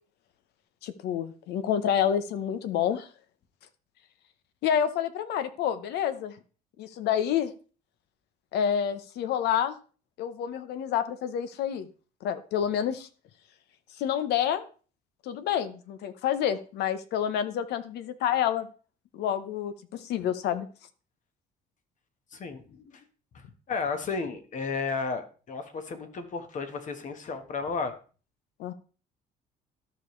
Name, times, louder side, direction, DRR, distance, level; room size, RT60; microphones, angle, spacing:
voice 1, 0.8-3.1 4.6-6.4 6.8-7.5 8.5-9.7 10.2-11.9 12.2-13.1 14.0-14.6 15.2-18.7 19.1-20.7 28.6-28.7, left 9 dB, 80° left, 13 dB, 0.9 m, -28 dB
voice 2, 22.3-23.0 23.3-27.9, left 4 dB, 50° left, 8 dB, 1.4 m, -33 dB
13.5 x 5.1 x 3.2 m, 0.38 s
cardioid pair, 110°, 17 cm